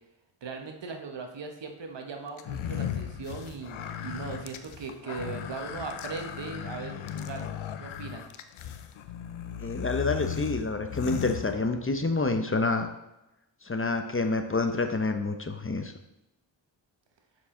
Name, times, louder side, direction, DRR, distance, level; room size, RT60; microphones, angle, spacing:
voice 1, 0.4-8.2, right 4 dB, 65° right, 4 dB, 1.2 m, -39 dB
sound 1, 2.4-12.1, left 9 dB, 85° left, 0.6 m, -36 dB
voice 2, 9.6-12.9 13.6-15.9, left 3 dB, 25° left, 6 dB, 0.8 m, -28 dB
6.8 x 4.8 x 3.8 m, 0.92 s
cardioid pair, 40°, 47 cm